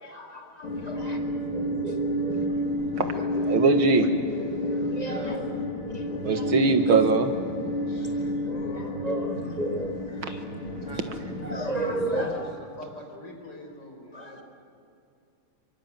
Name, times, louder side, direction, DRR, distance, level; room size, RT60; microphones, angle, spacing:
voice 1, 0.0-1.2 1.5-2.5 3.1-3.7 4.3-5.4 5.9-6.5 6.9-7.0 8.0-10.4 11.1-11.2 11.4-12.5 14.1-14.4, right 1 dB, 20° right, 1 dB, 1.9 m, -34 dB
voice 2, 0.5-1.0 3.1-3.6 5.0-5.5 7.9-9.1 10.8-11.6 11.9-14.4, left 1 dB, 55° left, 2 dB, 5.8 m, -42 dB
sound 1, 0.6-12.3, equal, 80° left, 4.1 m, -30 dB
voice 3, 3.5-4.1 6.2-7.3, right 4 dB, 75° right, 6 dB, 2.4 m, -21 dB
29.0 x 24.0 x 7.7 m, 2.5 s
omnidirectional pair, 2.3 m